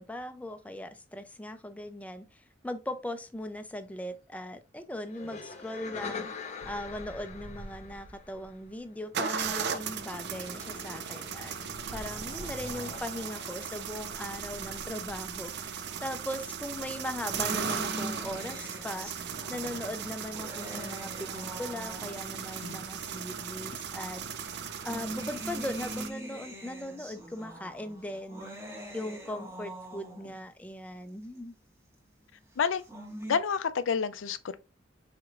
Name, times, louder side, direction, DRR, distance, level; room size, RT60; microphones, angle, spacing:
voice 1, 0.0-11.5 11.9-24.6 24.8-28.6 28.9-31.5, left 1 dB, 10° left, 0.5 m, -39 dB
sound 1, 5.1-8.7 10.0-14.7, left 4 dB, 40° left, 0.7 m, -45 dB
sound 2, 6.6-8.5 9.1-26.1, right 6 dB, 60° right, 0.5 m, -37 dB
sound 3, 17.4-22.4 23.4-23.5 24.6-30.5 32.6-33.4, right 1 dB, 15° right, 1.2 m, -43 dB
voice 2, 33.2-34.6, left 6 dB, 90° left, 0.5 m, -29 dB
4.7 x 4.3 x 2.5 m
head